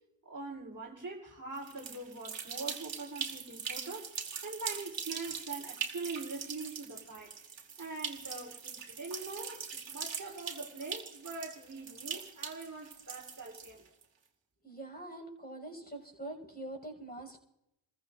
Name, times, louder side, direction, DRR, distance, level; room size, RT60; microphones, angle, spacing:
voice 1, 0.2-4.1 4.4-7.4 7.8-13.8, right 3 dB, 40° right, -1 dB, 4.0 m, -43 dB
sound 1, 1.6-14.0, right 6 dB, 60° right, 2.5 m, -42 dB
voice 2, 14.6-17.4, right 1 dB, 20° left, 1 dB, 6.5 m, -44 dB
29.5 x 14.5 x 2.7 m, 0.84 s
cardioid pair, 50°, 49 cm